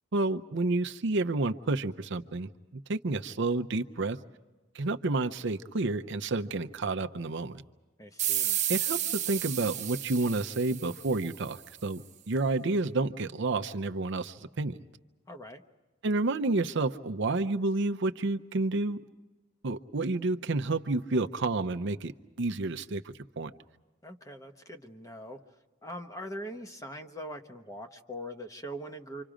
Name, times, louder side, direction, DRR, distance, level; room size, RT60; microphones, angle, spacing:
voice 1, 0.1-2.5 2.9-4.2 4.7-7.6 8.7-14.8 16.0-19.0 19.6-23.5, right 2 dB, 65° right, 7 dB, 0.7 m, -30 dB
voice 2, 8.0-8.6 15.3-15.6 24.0-25.4 25.8-29.2, equal, 15° left, 5 dB, 1.1 m, -42 dB
sound 1, 8.2-11.5, right 12 dB, 40° right, 0.9 m, -32 dB
28.5 x 26.0 x 5.1 m, 1.2 s
head